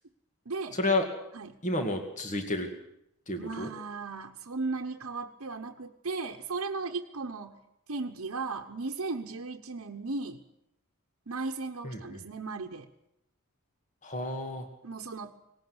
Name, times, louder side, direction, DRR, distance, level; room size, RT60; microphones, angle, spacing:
voice 1, 0.5-0.8 1.3-1.6 3.4-7.6 7.9-10.4 11.3-12.9 14.8-15.3, right 3 dB, 75° right, 2 dB, 1.1 m, -36 dB
voice 2, 1.6-2.7 3.3-3.7 11.8-12.2 14.0-14.7, left 2 dB, 35° left, 5 dB, 2.3 m, -30 dB
19.0 x 17.5 x 8.0 m, 0.79 s
head